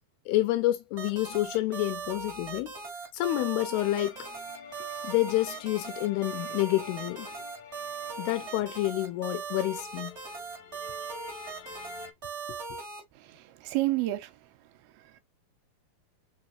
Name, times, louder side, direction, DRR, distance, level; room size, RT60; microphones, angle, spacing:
voice 1, 0.3-2.7 3.1-4.3 5.0-7.3 8.2-10.1, left 16 dB, 90° left, 2.6 m, -28 dB
sound 1, 1.0-13.0, right 5 dB, 65° right, 0.6 m, -39 dB
sound 2, 3.7-12.1, left 8 dB, 70° left, 1.8 m, -49 dB
voice 2, 13.2-14.4 14.8-15.2, right 17 dB, 85° right, 2.5 m, -31 dB
5.7 x 3.2 x 2.8 m
omnidirectional pair, 4.4 m